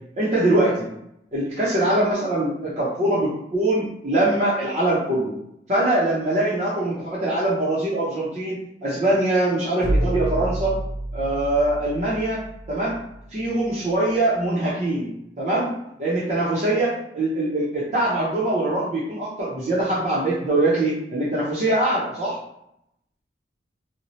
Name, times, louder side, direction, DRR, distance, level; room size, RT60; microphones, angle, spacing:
voice 1, 0.2-0.9 1.3-5.3 5.7-10.8 11.1-12.4 12.7-13.0 13.3-15.1 15.4-22.4, right 1 dB, 40° right, -8 dB, 0.6 m, -23 dB
sound 1, 9.8-13.7, right 1 dB, 25° left, 0.3 m, -29 dB
2.7 x 2.1 x 3.0 m, 0.78 s
head